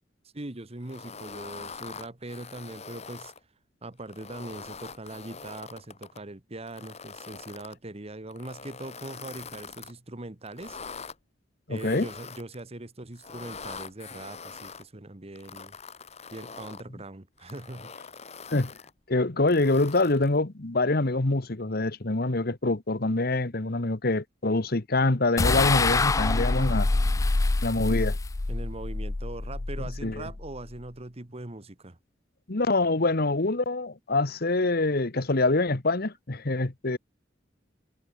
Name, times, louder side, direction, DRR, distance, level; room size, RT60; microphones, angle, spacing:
voice 1, 0.3-3.3 3.8-10.8 11.7-15.8 16.3-17.9 28.5-32.0, right 2 dB, 35° right, 1.4 m, -41 dB
sound 1, 0.8-3.4 4.0-6.2 6.7-7.8 8.3-9.9 10.5-11.2 11.8-12.6 13.1-14.8 15.4-16.9 17.4-18.9 19.5-20.4, left 5 dB, 35° left, 2.1 m, -43 dB
voice 2, 11.7-12.1 18.5-18.7 19.1-26.9 27.6-28.2 30.0-30.3 32.5-37.0, left 2 dB, 55° left, 1.4 m, -25 dB
sound 2, 25.4-30.7, left 3 dB, 15° left, 0.3 m, -26 dB
head